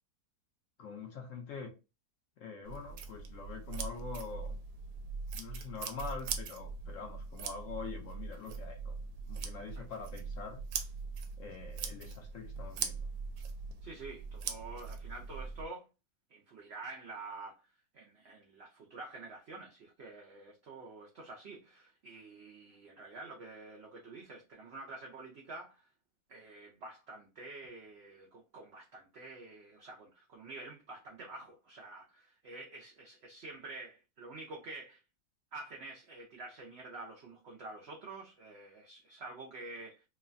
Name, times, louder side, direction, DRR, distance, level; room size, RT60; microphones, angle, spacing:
voice 1, 0.8-1.7 2.4-4.6 5.3-9.0 9.3-10.6 11.4-13.1, left 5 dB, 65° left, 0.8 m, -45 dB
sound 1, 2.6-15.6, right 5 dB, 90° right, 1.1 m, -41 dB
voice 2, 13.8-15.9 16.3-17.7 17.9-25.9 26.3-35.0 35.5-40.0, right 3 dB, 65° right, 0.6 m, -48 dB
3.1 x 2.1 x 2.4 m
omnidirectional pair, 1.7 m